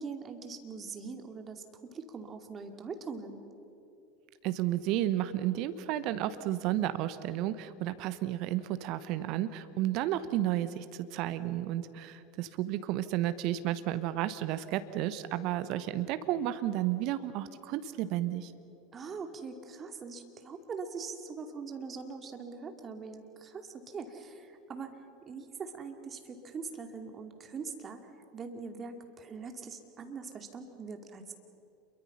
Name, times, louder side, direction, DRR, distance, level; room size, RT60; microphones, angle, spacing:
voice 1, 0.0-3.4 18.9-24.9 25.3-31.3, right 5 dB, 30° right, 5 dB, 2.5 m, -42 dB
voice 2, 4.4-10.8 11.1-18.5, right 13 dB, 50° right, 13 dB, 1.1 m, -32 dB
28.5 x 23.0 x 5.7 m, 2.8 s
figure-of-eight pair, 80°, 0 cm